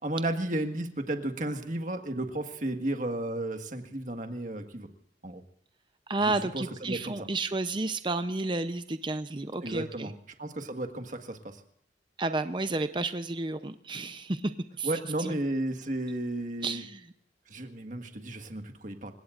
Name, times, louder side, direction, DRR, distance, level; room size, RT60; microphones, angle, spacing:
voice 1, 0.0-4.9 5.2-5.4 6.2-7.3 9.6-10.1 10.4-11.6 14.8-16.8 17.5-19.1, right 1 dB, 45° right, 5 dB, 1.7 m, -33 dB
voice 2, 6.1-10.1 12.2-14.5 14.8-14.9 15.2-15.3 16.6-17.0, right 2 dB, 25° right, 10 dB, 0.7 m, -31 dB
28.0 x 17.0 x 2.5 m, 0.71 s
head